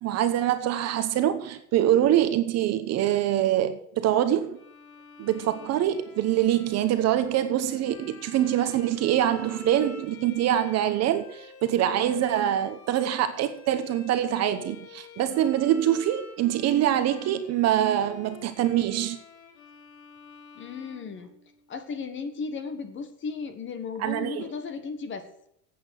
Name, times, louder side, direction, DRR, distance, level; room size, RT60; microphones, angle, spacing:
voice 1, 0.0-4.6 5.2-19.2 24.0-24.5, right 11 dB, 30° right, 1.0 m, -24 dB
Bowed string instrument, 4.5-21.8, left 6 dB, 75° left, 3.9 m, -48 dB
voice 2, 20.5-21.3 21.7-25.3, left 5 dB, 25° left, 1.4 m, -35 dB
12.5 x 8.6 x 6.4 m
supercardioid pair, 145°, 49 cm